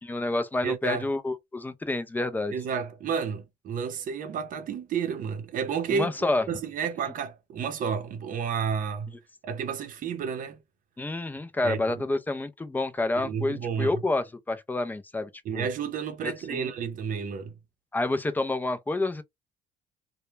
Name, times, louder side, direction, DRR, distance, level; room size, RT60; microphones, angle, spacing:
voice 1, 0.0-2.5 5.9-6.5 11.0-15.7 16.2-16.7 17.9-19.2, left 2 dB, 10° left, 0.3 m, -29 dB
voice 2, 0.6-1.1 2.5-6.1 6.5-9.1 9.4-10.6 11.6-11.9 13.2-14.0 15.4-17.5, right 6 dB, 55° right, 0.6 m, -31 dB
2.1 x 2.0 x 3.1 m
cardioid pair, 110°, 17 cm